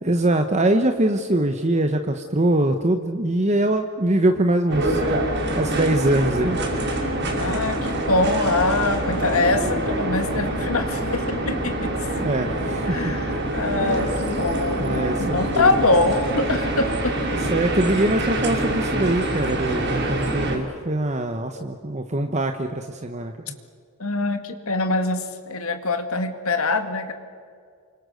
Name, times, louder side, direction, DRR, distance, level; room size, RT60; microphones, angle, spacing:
voice 1, 0.0-6.8 12.2-13.4 13.8-14.1 14.8-15.7 17.4-23.3, right 1 dB, 30° right, 6 dB, 1.1 m, -23 dB
sound 1, 4.7-20.6, right 1 dB, 50° right, 5.7 m, -25 dB
voice 2, 7.3-11.9 12.9-17.2 21.6-21.7 24.0-27.1, left 2 dB, 65° left, 7 dB, 2.2 m, -24 dB
29.0 x 24.5 x 6.5 m, 2.2 s
head